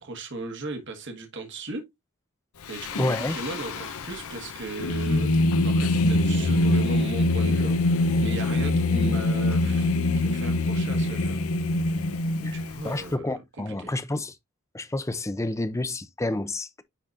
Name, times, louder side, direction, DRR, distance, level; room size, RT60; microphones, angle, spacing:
voice 1, 0.0-1.8 2.7-3.0 3.3-5.3 5.6-9.9 10.2-11.4 12.4-13.9, right 3 dB, 55° right, 1.4 m, -37 dB
Singing, 2.7-13.1, left 2 dB, 75° left, 0.7 m, -24 dB
voice 2, 3.0-3.4 12.4-12.6 12.8-14.4 14.7-16.8, left 2 dB, 15° left, 0.5 m, -29 dB
9.9 x 3.8 x 2.6 m
head